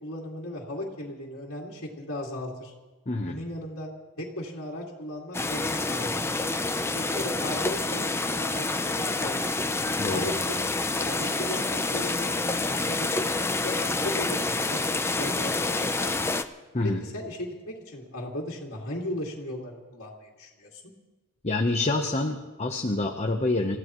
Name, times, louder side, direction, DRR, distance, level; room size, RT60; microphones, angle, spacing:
voice 1, 0.0-2.7 3.3-3.9 4.2-6.5 6.9-9.5 10.1-10.6 11.0-16.3 16.8-20.8, left 1 dB, 60° left, -4 dB, 2.5 m, -37 dB
voice 2, 3.1-3.4 10.0-10.3 16.7-17.0 21.4-23.8, left 2 dB, 30° left, 2 dB, 1.0 m, -27 dB
sound 1, 5.3-16.4, left 2 dB, 10° left, 0.6 m, -28 dB
30.0 x 15.0 x 3.1 m, 1.2 s
head